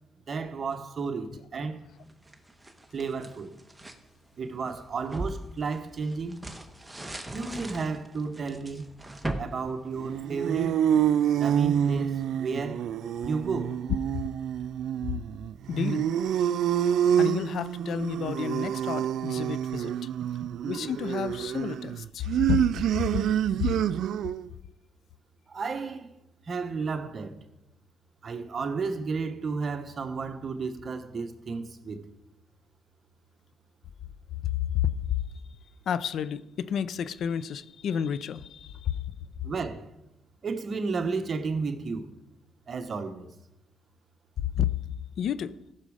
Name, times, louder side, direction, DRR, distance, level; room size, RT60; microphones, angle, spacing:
voice 1, 0.3-1.8 2.9-3.5 4.4-6.4 7.3-8.9 9.4-10.8 11.3-12.9 13.2-13.8 20.4-20.5 25.5-26.1 26.4-27.4 28.2-32.0 39.4-39.9 40.4-42.1 42.7-43.3, right 4 dB, 45° right, 1.1 m, -32 dB
sound 1, 2.1-4.0 4.5-10.6, right 1 dB, 10° right, 1.2 m, -39 dB
sound 2, 10.0-24.5, right 9 dB, 75° right, 0.3 m, -27 dB
voice 2, 15.7-16.1 17.2-20.1 20.6-22.6 23.0-23.2 23.6-23.7 34.4-35.2 35.9-39.0 44.4-44.7 45.2-45.6, left 9 dB, 65° left, 0.5 m, -30 dB
15.0 x 6.3 x 4.9 m
cardioid pair, 90°, 0 cm